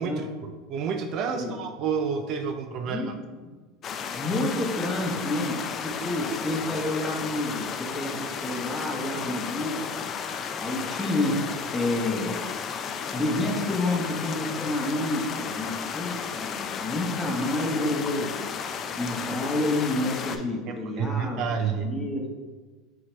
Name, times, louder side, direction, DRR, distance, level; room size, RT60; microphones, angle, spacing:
voice 1, 0.0-3.0 20.7-21.9, right 6 dB, 50° right, 6 dB, 0.4 m, -30 dB
sound 1, 3.8-20.4, left 6 dB, 35° left, 0.4 m, -33 dB
voice 2, 4.1-9.8 10.6-11.4 11.7-12.3 13.1-18.3 19.0-22.3, left 1 dB, 10° left, -1 dB, 0.9 m, -29 dB
5.7 x 2.8 x 3.1 m, 1.4 s
supercardioid pair, 110°, 0 cm